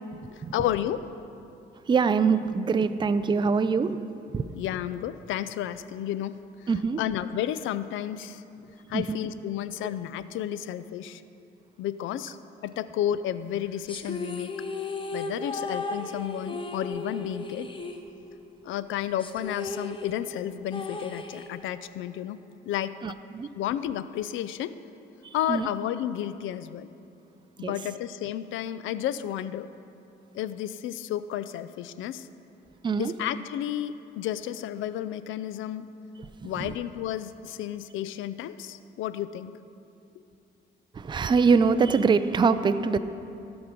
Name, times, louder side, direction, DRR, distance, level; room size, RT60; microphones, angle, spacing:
voice 1, 0.3-1.0 4.5-6.4 7.0-8.4 8.9-11.2 11.8-12.4 12.6-14.6 15.1-17.7 18.6-22.4 22.7-23.0 23.6-24.7 25.3-26.9 27.6-29.7 30.3-32.3 33.0-35.9 36.4-39.5, left 11 dB, 80° left, 14 dB, 0.4 m, -32 dB
voice 2, 1.9-3.9 4.3-4.4 6.7-7.0 8.9-9.2 23.0-23.5 25.5-25.7 27.6-27.7 32.8-33.1 36.6-36.8 41.0-43.0, right 5 dB, 25° right, 11 dB, 0.4 m, -23 dB
sound 1, 13.9-18.5 18.8-18.9 19.2-21.9, left 3 dB, 25° left, 0.8 m, -35 dB
16.0 x 6.1 x 5.1 m, 2.7 s
cardioid pair, 90°, 20 cm